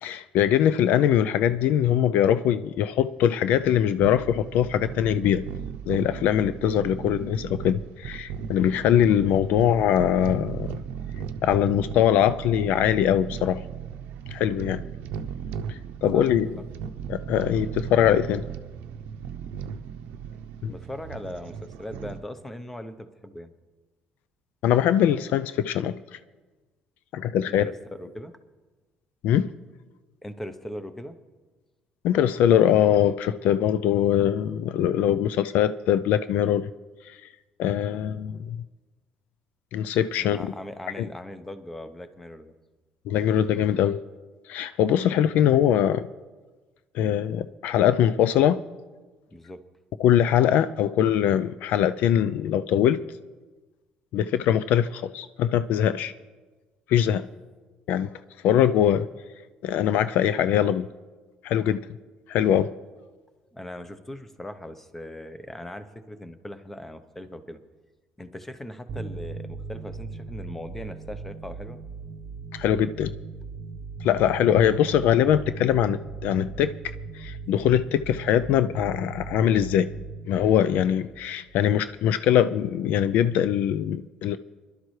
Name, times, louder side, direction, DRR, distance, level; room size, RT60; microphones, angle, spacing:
voice 1, 0.0-5.4 5.9-10.7 11.4-13.6 14.3-14.8 15.7-16.5 17.1-18.4 20.6-20.7 24.6-25.9 27.1-27.7 29.2-29.5 32.0-36.7 37.0-37.2 37.6-38.6 39.7-40.4 41.0-41.1 43.1-44.0 44.5-46.1 46.9-48.6 50.0-53.0 54.1-56.1 56.9-57.2 57.9-58.1 58.4-59.1 59.6-60.9 61.4-61.8 62.3-62.7 72.5-73.1 74.0-76.7 77.1-79.9 80.3-84.4, left 10 dB, 70° left, 14 dB, 0.4 m, -22 dB
sound 1, 2.8-22.2, right 8 dB, 85° right, 0.6 m, -36 dB
voice 2, 20.6-23.5 27.4-27.7 28.0-28.3 30.2-31.2 40.2-42.5 49.3-49.6 57.0-57.3 63.5-67.6 68.2-71.8, left 1 dB, 10° left, 10 dB, 0.8 m, -39 dB
sound 2, 68.9-82.1, right 4 dB, 45° right, 0.7 m, -38 dB
22.0 x 11.5 x 3.2 m, 1.3 s
cardioid pair, 135°, 3 cm